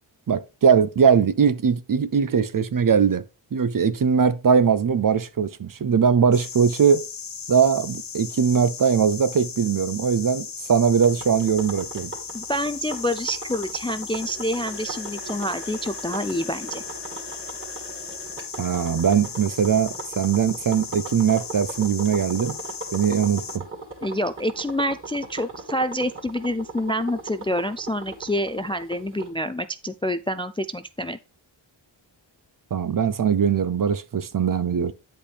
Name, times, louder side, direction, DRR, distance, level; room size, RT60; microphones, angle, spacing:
voice 1, 0.3-3.2 3.5-7.0 7.5-12.1 18.6-22.6 22.9-23.6 32.7-34.9, right 7 dB, 45° right, 0.6 m, -21 dB
sound 1, 6.3-23.6, left 6 dB, 45° left, 0.8 m, -37 dB
sound 2, 11.0-29.3, right 3 dB, 25° right, 2.4 m, -39 dB
voice 2, 12.3-16.8 24.0-31.2, equal, 15° left, 0.3 m, -27 dB
8.5 x 5.2 x 3.3 m
cardioid pair, 50°, 46 cm